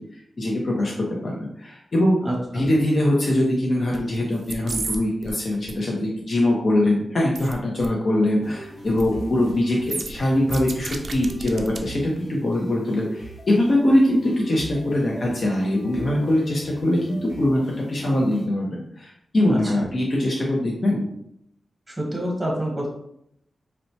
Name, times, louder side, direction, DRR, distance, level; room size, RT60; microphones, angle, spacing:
voice 1, 0.1-2.2 2.5-21.1, left 1 dB, 50° left, -3 dB, 0.6 m, -22 dB
voice 2, 2.2-2.6 19.5-19.6 21.9-22.9, right 1 dB, 15° right, -2 dB, 1.0 m, -27 dB
sound 1, 3.9-4.2 4.4-5.0 5.2-5.7 7.4-7.5 7.8-7.9 8.9-9.1 9.4-9.5 9.9-11.8 12.2-12.3, right 3 dB, 60° right, 0.4 m, -32 dB
sound 2, 8.4-18.5, equal, 75° left, 1.0 m, -40 dB
4.1 x 2.1 x 2.7 m, 0.75 s
wide cardioid pair, 95°, 0 cm